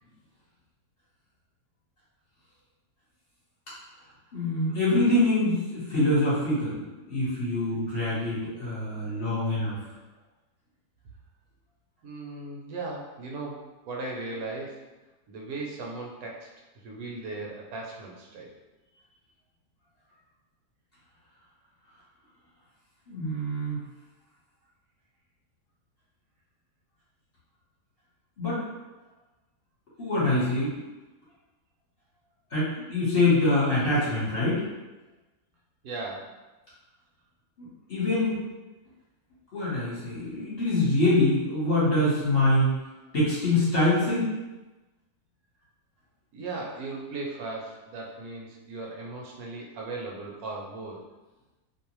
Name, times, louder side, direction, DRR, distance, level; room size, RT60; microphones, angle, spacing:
voice 1, 4.3-6.8 7.1-9.7 23.1-23.8 28.4-28.6 30.0-30.8 32.5-34.6 37.6-38.4 39.5-42.7 43.1-44.3, left 2 dB, 45° left, -9 dB, 1.0 m, -25 dB
voice 2, 12.0-14.8 15.3-16.5 16.8-18.5 35.8-36.3 46.3-51.0, right 3 dB, 80° right, -1 dB, 1.0 m, -37 dB
2.6 x 2.1 x 2.9 m, 1.1 s
omnidirectional pair, 1.6 m